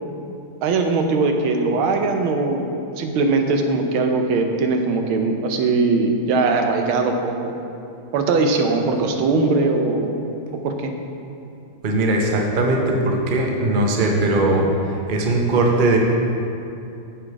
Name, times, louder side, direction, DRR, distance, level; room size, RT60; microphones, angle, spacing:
voice 1, 0.6-2.7 3.0-7.5 8.1-10.2 10.5-10.9, right 3 dB, 85° right, 4 dB, 1.6 m, -20 dB
voice 2, 11.8-14.7 15.1-16.0, right 2 dB, 50° right, 0 dB, 0.5 m, -19 dB
7.4 x 7.0 x 4.7 m, 2.7 s
omnidirectional pair, 2.2 m